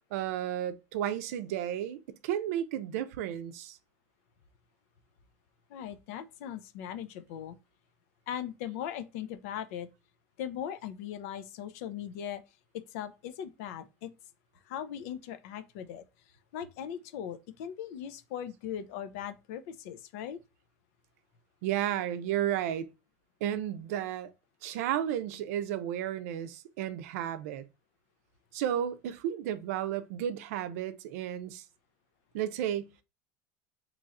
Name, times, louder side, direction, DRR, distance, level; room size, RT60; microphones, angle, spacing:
voice 1, 0.1-3.8 21.6-22.9 23.4-24.3 24.6-27.6 28.5-31.6 32.3-33.0, right 11 dB, 80° right, 0.5 m, -33 dB
voice 2, 5.7-7.6 8.3-9.9 10.4-12.4 12.7-14.1 14.7-16.0 16.5-20.4, left 9 dB, 70° left, 0.5 m, -39 dB
4.0 x 3.0 x 2.4 m
supercardioid pair, 145°, 8 cm